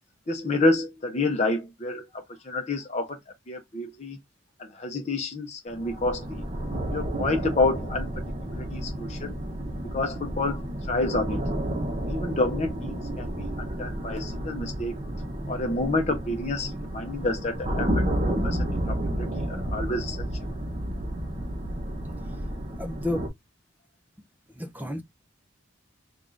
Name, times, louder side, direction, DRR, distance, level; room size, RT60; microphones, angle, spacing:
voice 1, 0.3-2.0 2.5-3.2 3.5-4.2 4.7-6.4 6.9-8.1 8.5-9.3 9.9-11.4 12.1-15.0 15.5-18.6 18.9-20.3, left 2 dB, 35° left, 0.7 m, -28 dB
sound 1, 5.7-23.3, right 1 dB, 30° right, 0.9 m, -31 dB
voice 2, 22.8-23.2 24.6-25.0, left 1 dB, 10° right, 0.5 m, -31 dB
3.5 x 2.4 x 3.7 m
head